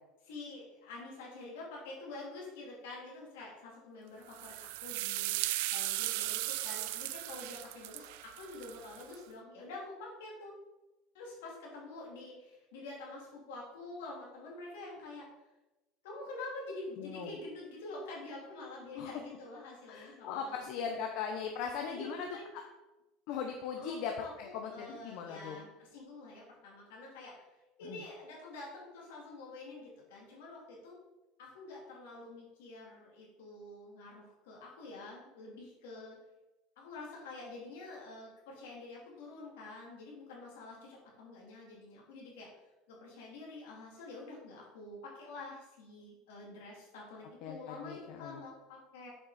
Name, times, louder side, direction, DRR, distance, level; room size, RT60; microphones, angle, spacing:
voice 1, 0.2-10.5 11.1-15.2 16.0-21.0 21.8-22.5 23.7-27.5 27.8-30.9 31.4-36.2 36.8-42.5 42.9-49.1, left 2 dB, 85° left, -3 dB, 2.9 m, -47 dB
sound 1, 4.3-9.1, right 16 dB, 80° right, 0.4 m, -37 dB
voice 2, 17.0-17.3 19.0-19.1 19.9-22.3 22.5-22.6 23.3-24.1 24.4-25.6 27.8-28.0 47.4-48.4, left 7 dB, 65° left, 4 dB, 0.8 m, -39 dB
7.3 x 5.6 x 4.1 m, 1.0 s
supercardioid pair, 110°, 0 cm